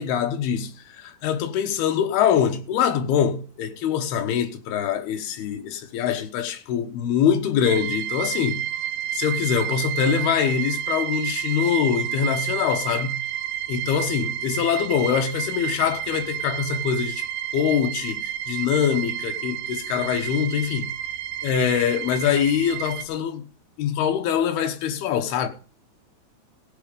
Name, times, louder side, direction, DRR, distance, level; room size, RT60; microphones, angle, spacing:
voice 1, 0.0-8.7 9.1-13.2 13.7-17.3 17.5-20.9 21.4-23.5 23.8-25.5, left 8 dB, 85° left, 3.2 m, -24 dB
sound 1, 7.6-23.0, right 11 dB, 90° right, 2.9 m, -30 dB
16.5 x 7.6 x 5.3 m
omnidirectional pair, 4.4 m